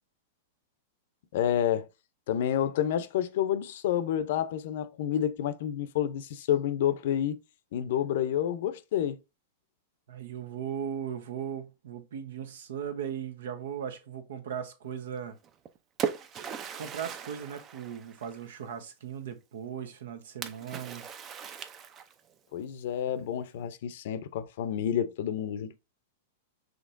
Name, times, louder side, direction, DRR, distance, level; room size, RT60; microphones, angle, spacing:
voice 1, 1.3-1.9 2.3-7.4 7.7-9.2 22.5-25.8, left 10 dB, 65° left, 0.6 m, -29 dB
voice 2, 10.1-15.3 16.8-21.1, right 8 dB, 75° right, 0.9 m, -38 dB
Splash splatter, 15.4-18.6 20.4-22.3, right 8 dB, 30° right, 0.5 m, -38 dB
5.1 x 3.2 x 2.5 m
hypercardioid pair, 125°, 0 cm